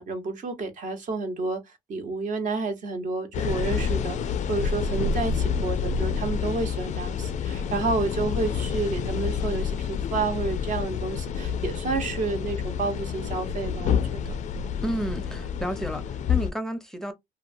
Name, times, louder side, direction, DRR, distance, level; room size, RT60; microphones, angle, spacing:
voice 1, 0.0-1.6 1.9-14.4, right 3 dB, 50° right, 1.0 m, -30 dB
sound 1, 3.3-16.5, left 6 dB, 45° left, 0.4 m, -28 dB
voice 2, 14.8-17.1, equal, 5° left, 0.6 m, -31 dB
2.8 x 2.2 x 2.6 m
cardioid pair, 110°, 17 cm